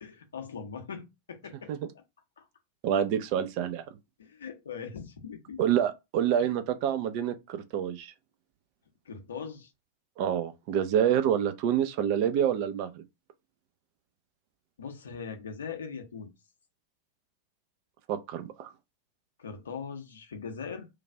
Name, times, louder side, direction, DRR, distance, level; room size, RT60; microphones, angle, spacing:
voice 1, 0.0-1.7 2.4-2.5 4.2-5.6 9.0-9.7 14.8-16.3 19.4-20.9, left 6 dB, 65° left, 0.7 m, -40 dB
voice 2, 2.8-3.8 5.6-8.1 10.2-13.0 18.1-18.7, right 9 dB, 45° right, 0.5 m, -27 dB
3.2 x 2.4 x 3.3 m
figure-of-eight pair, 90°, 0 cm